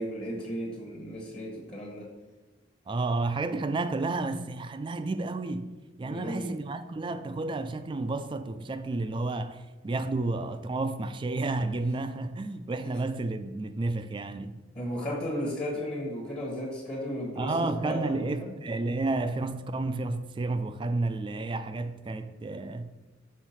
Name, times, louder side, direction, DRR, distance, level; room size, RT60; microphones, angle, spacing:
voice 1, 0.0-2.1 6.1-6.5 14.7-18.5, equal, 30° left, 1.1 m, -34 dB
voice 2, 2.9-5.7 6.0-14.6 17.4-22.9, right 2 dB, 25° right, 0.3 m, -31 dB
6.3 x 3.6 x 5.6 m
head